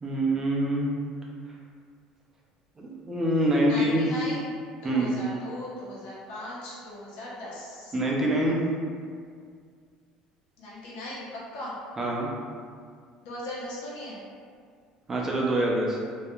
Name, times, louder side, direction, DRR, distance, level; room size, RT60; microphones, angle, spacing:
voice 1, 0.0-0.9 2.8-4.0 4.8-5.1 7.9-8.6 12.0-12.3 15.1-16.0, right 1 dB, 20° right, -3 dB, 0.5 m, -25 dB
voice 2, 3.7-7.9 10.6-11.8 13.2-14.2, left 1 dB, 75° left, -7 dB, 0.8 m, -38 dB
2.4 x 2.1 x 2.9 m, 2.1 s
cardioid pair, 125°, 2 cm